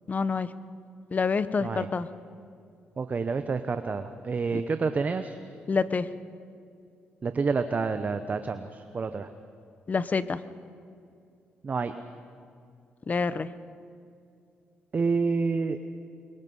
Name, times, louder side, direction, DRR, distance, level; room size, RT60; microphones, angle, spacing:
voice 1, 0.1-0.5 1.1-2.1 4.5-4.6 5.7-6.1 9.9-10.4 13.1-13.5, left 4 dB, 40° left, 15 dB, 0.9 m, -27 dB
voice 2, 3.0-5.4 7.2-9.3 11.6-11.9 14.9-15.8, right 4 dB, 40° right, 9 dB, 0.9 m, -28 dB
24.5 x 23.0 x 5.6 m, 2.4 s
cardioid pair, 70°, 4 cm